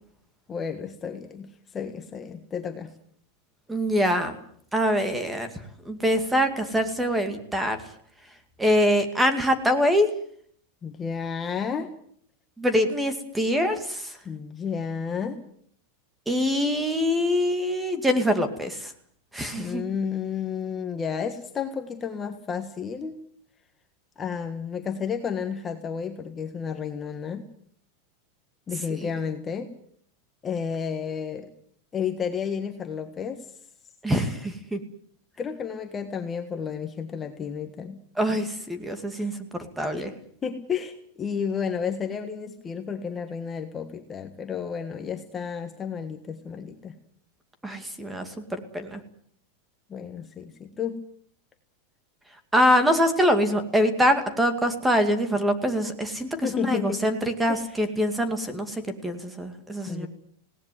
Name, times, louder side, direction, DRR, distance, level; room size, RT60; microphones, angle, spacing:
voice 1, 0.5-2.9 10.8-11.9 14.2-15.4 19.5-23.1 24.2-27.4 28.7-29.7 30.4-31.5 31.9-33.5 35.4-38.0 39.2-39.3 40.4-47.0 49.9-51.0 56.4-57.0 57.5-57.8 59.9-60.1, left 6 dB, 20° left, 5 dB, 1.5 m, -32 dB
voice 2, 3.7-4.4 4.7-5.5 5.9-7.8 8.6-10.1 12.6-14.1 16.3-18.9 19.3-19.8 34.0-34.8 38.2-39.3 39.8-40.1 47.6-49.0 52.5-60.1, equal, 5° right, 8 dB, 2.3 m, -24 dB
19.0 x 18.0 x 9.4 m, 0.63 s
supercardioid pair, 150°, 0 cm